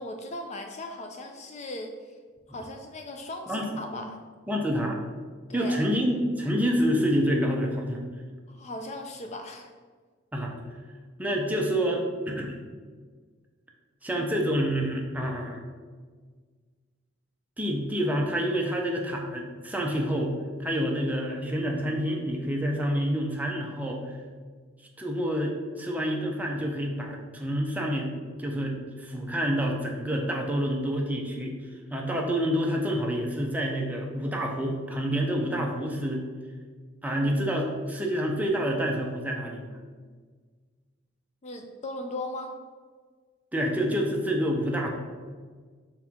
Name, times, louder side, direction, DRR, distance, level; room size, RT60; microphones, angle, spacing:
voice 1, 0.0-1.9 2.5-4.2 5.5-5.8 8.5-9.7 41.4-42.5, left 1 dB, 35° left, 5 dB, 0.4 m, -38 dB
voice 2, 4.5-5.0 5.5-8.0 10.3-10.5 11.2-12.5 14.0-15.6 17.6-20.3 20.6-24.0 25.0-28.1 28.4-31.5 31.9-36.2 37.0-39.7 43.5-44.9, equal, 10° right, 0 dB, 0.7 m, -28 dB
6.0 x 4.4 x 3.6 m, 1.5 s
head